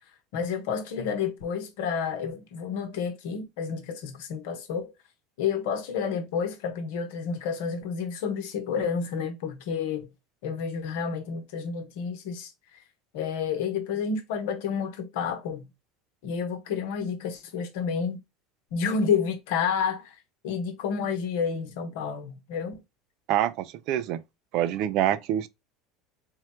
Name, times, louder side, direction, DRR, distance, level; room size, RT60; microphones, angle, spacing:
voice 1, 0.3-4.9 5.4-10.1 10.4-12.5 13.1-15.7 16.2-18.2 18.7-20.2 20.4-22.8, left 6 dB, 75° left, 0.9 m, -30 dB
voice 2, 23.3-24.2 24.5-25.5, right 11 dB, 60° right, 0.5 m, -26 dB
3.6 x 2.2 x 4.3 m
hypercardioid pair, 90°, 0 cm